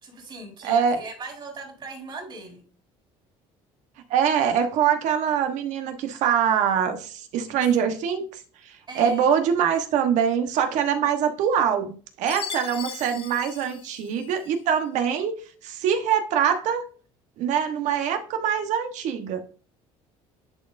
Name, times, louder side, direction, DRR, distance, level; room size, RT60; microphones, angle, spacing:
voice 1, 0.0-2.6 8.9-9.3, right 3 dB, 40° right, 1 dB, 3.7 m, -39 dB
voice 2, 0.6-1.0 4.1-15.3 15.6-16.8 17.4-19.4, right 8 dB, 70° right, 6 dB, 1.2 m, -24 dB
Chime, 12.3-14.6, left 8 dB, 45° left, 0.7 m, -38 dB
10.5 x 4.5 x 2.6 m, 0.39 s
supercardioid pair, 95°, 13 cm